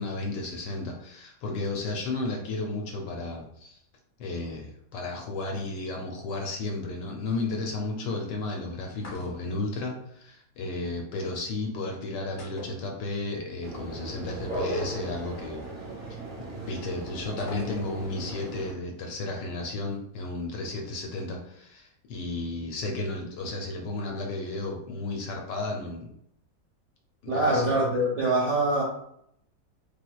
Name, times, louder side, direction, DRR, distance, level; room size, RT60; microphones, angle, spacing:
voice 1, 0.0-3.8 4.2-15.6 16.1-16.2 16.6-26.1 27.2-27.8, left 2 dB, 75° left, 1 dB, 1.2 m, -33 dB
sound 1, 9.0-9.7 12.4-13.4 13.7-13.8 17.4-18.2, left 3 dB, 55° left, 1.2 m, -43 dB
sound 2, 13.6-18.7, right 1 dB, 30° right, 0.7 m, -37 dB
voice 2, 27.3-28.8, right 1 dB, 65° right, -4 dB, 0.8 m, -24 dB
3.3 x 2.9 x 2.3 m, 0.72 s
omnidirectional pair, 2.1 m